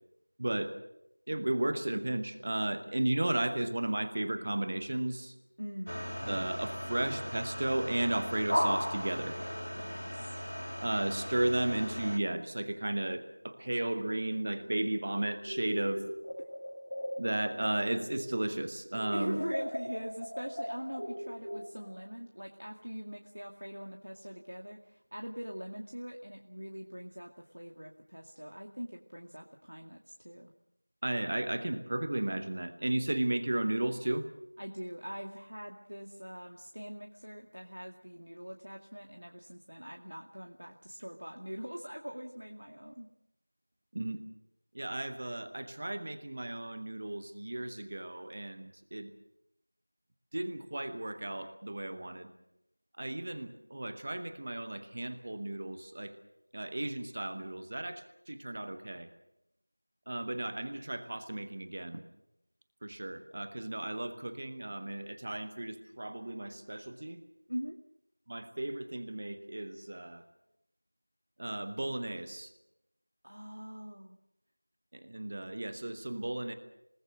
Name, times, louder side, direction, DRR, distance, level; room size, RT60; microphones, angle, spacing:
voice 1, 0.4-0.7 1.3-5.3 6.3-9.4 10.8-16.0 17.2-19.4 31.0-34.3 43.9-44.2 44.7-49.1 50.3-52.3 53.0-56.1 56.5-59.1 60.1-62.0 62.8-67.2 68.3-70.2 71.4-72.5 74.9-76.5, right 1 dB, 15° right, 10 dB, 0.9 m, -34 dB
voice 2, 5.6-5.9 9.7-10.4 16.4-16.5 19.1-30.5 34.6-43.1 67.5-67.8 73.2-74.2, equal, 80° right, 2 dB, 2.2 m, -42 dB
sound 1, 5.9-12.2, equal, 80° left, 2.6 m, -36 dB
sound 2, 15.4-18.6 18.9-21.9, equal, 35° left, 5.3 m, -40 dB
28.5 x 19.0 x 6.4 m, 0.83 s
figure-of-eight pair, 180°, 0 cm